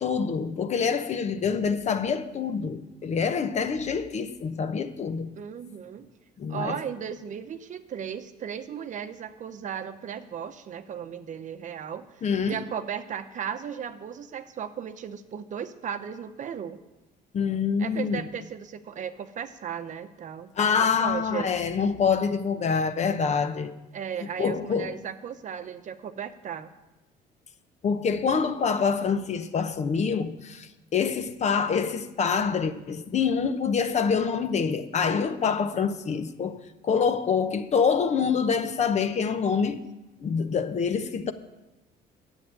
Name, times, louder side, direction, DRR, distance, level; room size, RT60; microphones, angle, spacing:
voice 1, 0.0-5.3 6.4-6.8 12.2-12.6 17.3-18.2 20.6-23.8 24.2-25.0 27.8-39.8 40.2-41.3, left 6 dB, 40° left, 0.9 m, -26 dB
voice 2, 5.3-6.1 6.5-16.8 17.8-21.5 23.9-26.7, right 8 dB, 45° right, 0.8 m, -36 dB
10.0 x 8.1 x 8.7 m
cardioid pair, 110°, 17 cm